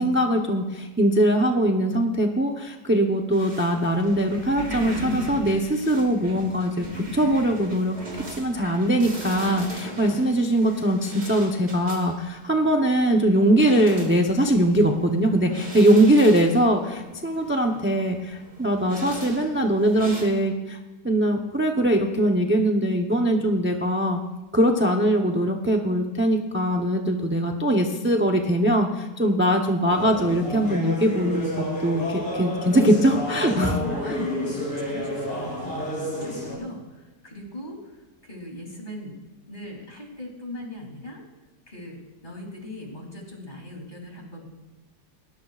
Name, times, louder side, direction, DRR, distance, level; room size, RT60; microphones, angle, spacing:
voice 1, 0.0-20.8 21.0-24.2 24.5-34.3, right 1 dB, 15° right, 2 dB, 0.4 m, -22 dB
sound 1, 3.3-20.2, right 1 dB, 35° right, 3.5 m, -38 dB
sound 2, 29.9-36.5, left 1 dB, 85° left, 7.0 m, -31 dB
voice 2, 33.6-39.2 39.5-41.2 41.7-44.5, left 2 dB, 30° left, 0 dB, 3.2 m, -39 dB
20.0 x 19.5 x 2.5 m, 1.1 s
omnidirectional pair, 1.8 m